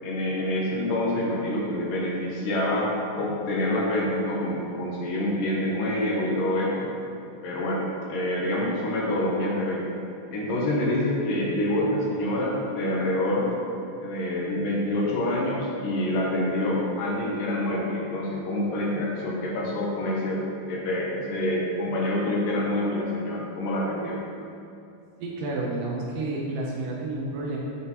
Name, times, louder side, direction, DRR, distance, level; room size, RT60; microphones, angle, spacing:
voice 1, 0.0-2.9 3.2-6.9 7.4-9.9 10.3-13.5 14.0-24.2, left 1 dB, 70° left, -3 dB, 2.4 m, -26 dB
voice 2, 25.2-27.6, right 2 dB, 75° right, -3 dB, 2.2 m, -30 dB
9.7 x 6.4 x 3.0 m, 2.6 s
omnidirectional pair, 4.3 m